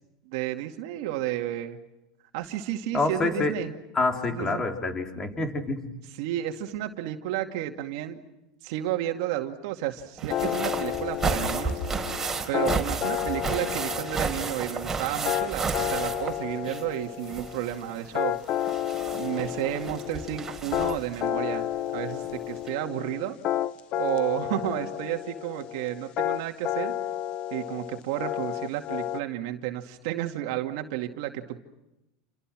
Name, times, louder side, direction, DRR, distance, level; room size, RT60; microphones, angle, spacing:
voice 1, 0.3-1.8 2.3-3.7 4.3-4.7 6.2-8.2 8.6-11.8 12.5-18.4 19.2-23.4 24.0-26.9 27.5-31.6, right 13 dB, 65° right, 4 dB, 2.4 m, -32 dB
voice 2, 2.9-3.5 3.9-5.9, left 3 dB, 20° left, 4 dB, 4.0 m, -27 dB
sound 1, 10.2-16.9 17.2-21.2 22.2-22.3 22.7-22.8, right 4 dB, 15° right, 4.5 m, -32 dB
sound 2, 10.3-29.2, left 12 dB, 45° left, 1.1 m, -31 dB
29.5 x 27.0 x 6.4 m, 0.93 s
supercardioid pair, 125°, 3 cm